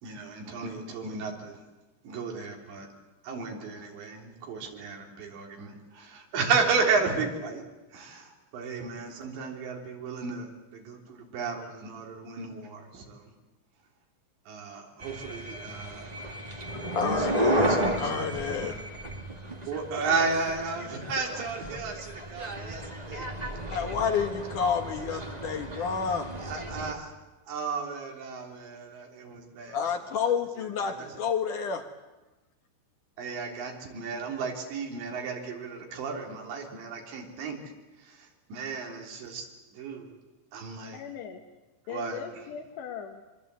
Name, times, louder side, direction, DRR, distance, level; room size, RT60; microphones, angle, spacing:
voice 1, 0.0-1.6 2.0-2.9 3.2-7.6 7.9-13.3 14.5-16.1 17.4-18.8 19.6-23.3 26.4-27.1 27.5-29.8 30.9-31.1 33.2-37.6 38.0-39.5 39.7-40.1 40.5-41.0 41.9-42.2, right 4 dB, 85° right, 1 dB, 5.7 m, -33 dB
sound 1, 15.0-26.9, right 1 dB, 25° right, 0.8 m, -33 dB
voice 2, 16.7-18.8 23.7-26.3 29.7-31.8 33.2-33.3, left 6 dB, 60° left, 5 dB, 2.4 m, -30 dB
voice 3, 40.9-41.4 41.9-43.2, left 8 dB, 80° left, 2 dB, 3.7 m, -39 dB
25.0 x 24.5 x 8.3 m, 1.1 s
omnidirectional pair, 5.0 m